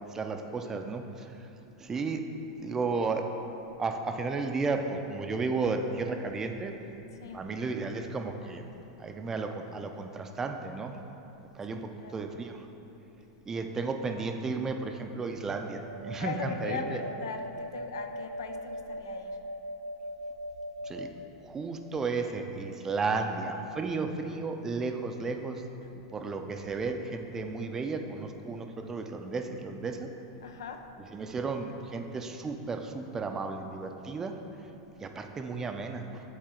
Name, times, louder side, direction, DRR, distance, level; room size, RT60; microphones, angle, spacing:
voice 1, 0.1-1.3 1.8-2.2 2.6-3.3 3.8-6.7 7.3-8.7 9.0-10.9 11.5-12.7 13.5-17.0 20.8-21.1 21.4-25.6 26.1-30.1 31.1-34.3 35.0-36.2, right 4 dB, 20° right, 5 dB, 0.5 m, -33 dB
voice 2, 11.7-12.1 16.2-19.4 30.4-30.8, left 6 dB, 75° left, 6 dB, 0.4 m, -39 dB
sound 1, 15.7-21.1, equal, 75° right, 0.7 m, -40 dB
7.4 x 4.1 x 3.7 m, 3.0 s
hypercardioid pair, 100°, 2 cm